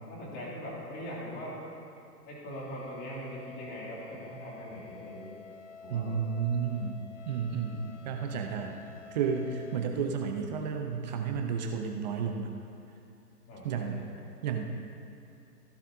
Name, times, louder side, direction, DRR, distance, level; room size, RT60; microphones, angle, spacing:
voice 1, 0.1-1.6 2.3-5.3 5.8-6.2 9.7-9.9 13.5-14.1, equal, 20° left, -5 dB, 3.0 m, -41 dB
sound 1, 2.5-9.9, left 5 dB, 50° left, 0.8 m, -50 dB
voice 2, 5.9-8.8 9.1-12.5 13.6-14.0 14.4-14.6, right 6 dB, 30° right, 4 dB, 0.7 m, -32 dB
15.5 x 11.5 x 2.8 m, 2.6 s
figure-of-eight pair, 125°, 47 cm